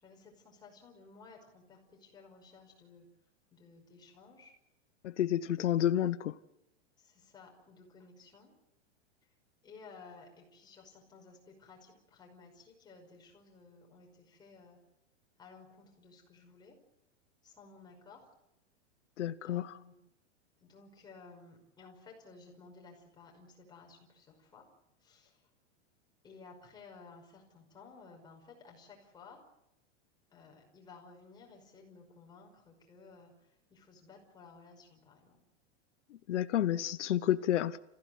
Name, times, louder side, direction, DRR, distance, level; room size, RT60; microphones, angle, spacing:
voice 1, 0.0-3.1 3.5-4.5 5.3-5.5 7.0-8.5 9.6-14.8 15.4-16.8 17.4-18.2 19.4-19.9 20.6-24.7 25.0-25.4 26.2-29.4 30.3-35.4, left 4 dB, 10° left, 5.5 m, -56 dB
voice 2, 5.0-6.3 19.2-19.8 36.3-37.8, left 11 dB, 90° left, 1.1 m, -30 dB
30.0 x 16.0 x 9.4 m
supercardioid pair, 170°, 35 cm